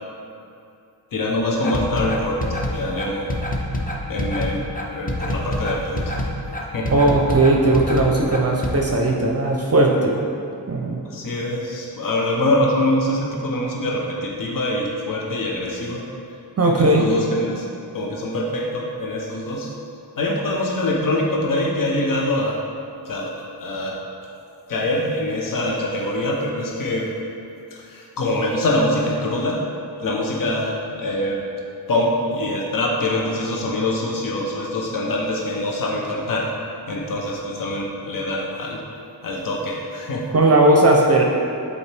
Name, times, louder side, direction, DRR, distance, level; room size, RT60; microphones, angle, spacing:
voice 1, 1.1-2.4 2.7-3.3 4.1-4.6 4.9-6.1 6.7-6.9 11.0-16.0 16.6-17.7 17.9-19.7 20.2-22.6 23.0-23.3 23.6-24.0 24.7-27.1 27.7-29.6 30.0-31.4 31.9-36.5 36.9-38.8 39.2-40.2, left 1 dB, 50° left, -2 dB, 0.9 m, -24 dB
sound 1, 1.6-8.7, left 1 dB, 20° left, 0.7 m, -26 dB
voice 2, 6.9-10.2 10.7-11.0 16.6-17.1 40.3-41.2, right 2 dB, 35° right, -1 dB, 0.7 m, -17 dB
7.0 x 4.3 x 3.4 m, 2.6 s
cardioid pair, 75°, 41 cm